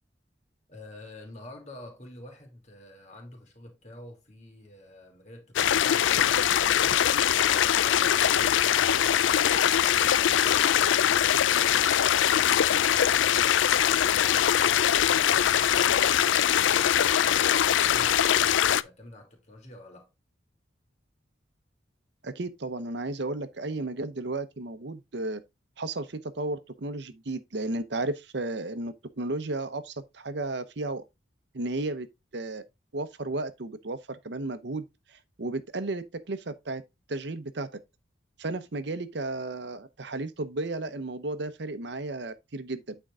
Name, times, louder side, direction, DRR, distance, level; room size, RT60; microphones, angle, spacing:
voice 1, 0.7-7.3 13.4-20.1, left 1 dB, 35° left, 2.7 m, -50 dB
sound 1, 5.6-18.8, left 10 dB, 75° left, 0.4 m, -22 dB
voice 2, 22.2-25.4 25.8-31.0 31.5-32.1 32.3-32.6 32.9-36.8 37.1-37.7 38.4-43.0, right 2 dB, 65° right, 0.8 m, -33 dB
9.0 x 4.5 x 3.5 m
head